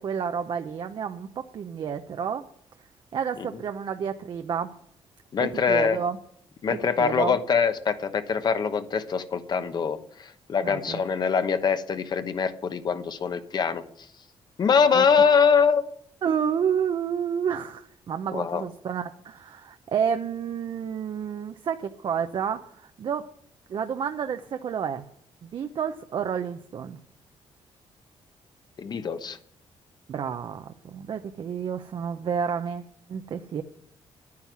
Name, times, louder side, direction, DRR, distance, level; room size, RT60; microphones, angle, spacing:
voice 1, 0.0-2.5 3.1-4.7 5.4-6.2 6.7-7.4 10.6-11.0 14.9-15.0 16.2-23.3 23.7-25.1 25.4-27.0 30.1-32.8 33.1-33.6, right 7 dB, 50° right, 7 dB, 0.7 m, -30 dB
voice 2, 5.3-6.0 6.6-13.8 14.6-15.9 18.3-18.6 28.8-29.4, left 6 dB, 40° left, 10 dB, 1.0 m, -23 dB
11.0 x 9.6 x 6.1 m, 0.67 s
cardioid pair, 140°, 10 cm